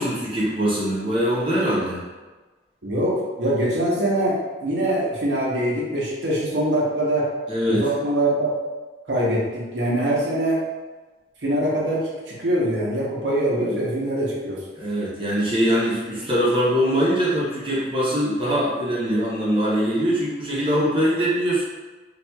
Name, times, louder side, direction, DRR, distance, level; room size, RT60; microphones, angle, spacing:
voice 1, 0.0-2.0 7.5-7.9 14.8-21.6, equal, 30° right, -8 dB, 0.7 m, -22 dB
voice 2, 2.8-7.3 7.7-8.5 9.1-10.6 11.4-14.6, right 1 dB, 80° right, -5 dB, 0.8 m, -23 dB
4.2 x 2.4 x 2.2 m, 1.3 s
head